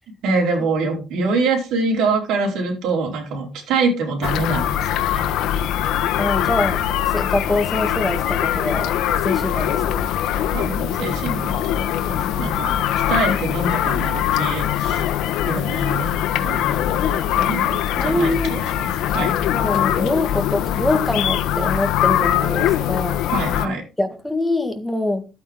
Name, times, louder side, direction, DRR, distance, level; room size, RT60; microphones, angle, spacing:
voice 1, 0.2-5.3 10.5-12.8 13.1-15.0 15.4-18.6 19.1-19.4 23.3-23.8, right 3 dB, 75° right, 4.7 m, -25 dB
sound 1, 4.2-23.7, left 11 dB, 85° left, 1.2 m, -22 dB
voice 2, 6.2-9.0 9.2-10.1 12.1-12.4 17.3-17.6 17.9-18.6 19.5-23.2 23.6-25.2, left 1 dB, 5° left, 1.8 m, -24 dB
12.5 x 8.8 x 3.7 m
cardioid pair, 150°, 0 cm